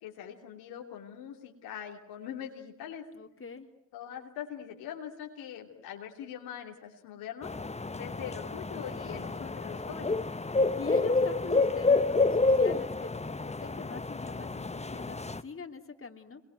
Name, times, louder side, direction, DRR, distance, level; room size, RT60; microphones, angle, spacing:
voice 1, 0.0-3.0 3.9-7.5 7.9-10.2, left 9 dB, 85° left, 1 dB, 3.0 m, -42 dB
voice 2, 3.1-3.7 10.7-16.4, left 4 dB, 35° left, 4 dB, 3.1 m, -43 dB
sound 1, 7.4-15.4, left 3 dB, 20° left, 1.2 m, -29 dB
26.5 x 23.5 x 9.4 m, 0.77 s
hypercardioid pair, 45°, 36 cm